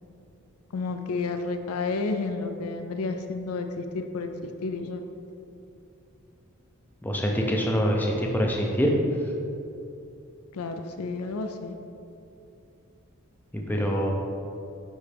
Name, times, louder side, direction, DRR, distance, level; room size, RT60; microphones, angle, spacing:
voice 1, 0.7-5.0 10.5-11.7, left 3 dB, 80° left, 6 dB, 0.4 m, -31 dB
voice 2, 7.0-8.9 13.7-14.1, equal, 10° left, -1 dB, 0.5 m, -24 dB
9.4 x 3.2 x 3.4 m, 2.7 s
head